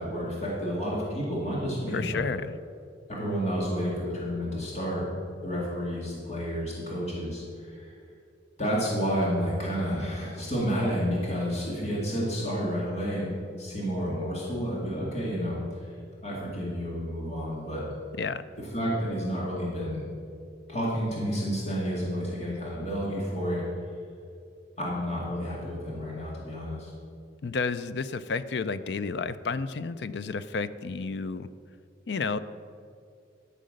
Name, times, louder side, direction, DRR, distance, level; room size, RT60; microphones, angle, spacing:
voice 1, 0.0-2.3 3.1-5.1 5.4-7.9 8.6-15.6 16.2-17.8 18.6-20.1 20.7-23.6 24.8-26.9, equal, 35° left, -5 dB, 2.1 m, -30 dB
voice 2, 1.9-2.5 18.2-18.4 27.4-31.5 32.1-32.4, left 4 dB, 70° left, 14 dB, 0.5 m, -31 dB
12.5 x 6.5 x 6.5 m, 2.4 s
head